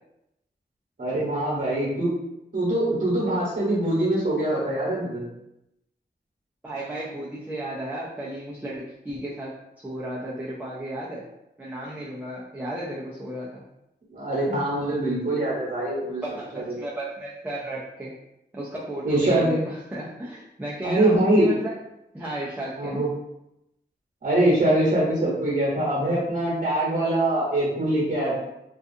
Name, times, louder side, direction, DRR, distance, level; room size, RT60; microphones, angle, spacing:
voice 1, 1.0-2.1 2.5-5.2 14.1-16.2 16.5-16.6 19.0-19.6 20.8-21.5 22.8-23.1 24.2-28.4, right 1 dB, 55° right, -7 dB, 1.0 m, -23 dB
voice 2, 6.6-9.5 9.8-11.3 11.6-13.6 16.2-18.1 18.5-21.7 22.1-23.0, right 1 dB, 10° right, -6 dB, 0.5 m, -34 dB
2.4 x 2.3 x 2.6 m, 0.87 s
wide cardioid pair, 55°, 19 cm